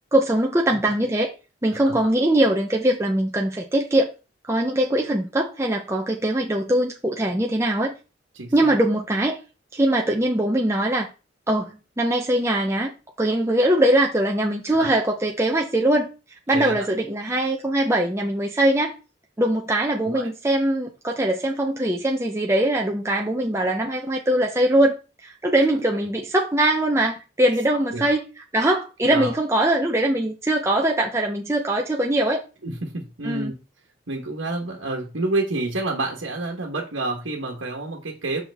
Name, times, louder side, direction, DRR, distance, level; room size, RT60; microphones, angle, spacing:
voice 1, 0.1-1.3 1.6-4.1 4.5-7.9 8.5-9.4 9.7-11.1 11.5-16.1 16.5-19.0 19.4-24.9 25.2-28.3 28.5-32.4 33.2-33.5, right 1 dB, 15° right, 0.6 m, -22 dB
voice 2, 8.3-8.7 14.7-14.9 16.5-16.9 20.0-20.3 27.9-28.1 29.0-29.3 32.6-33.5 34.1-38.4, right 2 dB, 85° right, 1.3 m, -29 dB
6.7 x 5.8 x 3.5 m
head